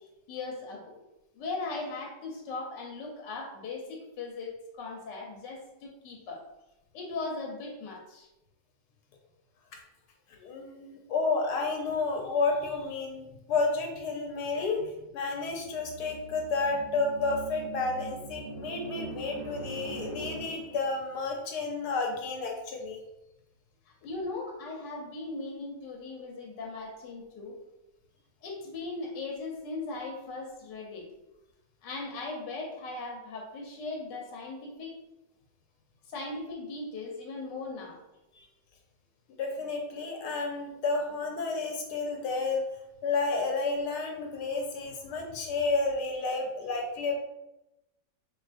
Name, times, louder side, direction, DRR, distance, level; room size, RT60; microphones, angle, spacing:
voice 1, 0.3-0.9 1.3-4.5 4.8-6.4 6.9-8.3 24.0-27.6 28.4-31.1 31.8-35.0 36.1-38.0, left 3 dB, 90° left, 0 dB, 1.4 m, -38 dB
voice 2, 10.4-23.0 38.4-38.5 39.4-42.6 43.0-47.2, left 3 dB, 75° left, 1 dB, 1.2 m, -31 dB
sound 1, 15.5-21.0, right 3 dB, 60° right, 1.1 m, -42 dB
4.7 x 2.8 x 2.5 m, 0.92 s
omnidirectional pair, 1.8 m